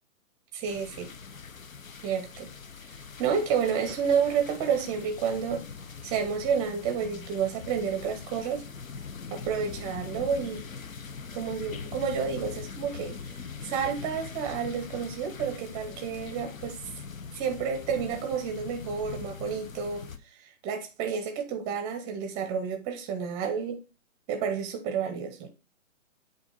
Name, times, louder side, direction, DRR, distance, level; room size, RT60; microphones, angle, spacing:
sound 1, 0.6-20.2, left 5 dB, 80° left, 1.0 m, -42 dB
voice 1, 0.6-1.1 2.0-2.5 3.2-5.6 6.0-8.6 9.3-10.6 11.3-13.2 13.6-16.8 17.3-20.1 20.6-23.8 24.3-25.5, right 7 dB, 10° right, 0.6 m, -30 dB
8.1 x 2.7 x 5.3 m
hypercardioid pair, 145°, 39 cm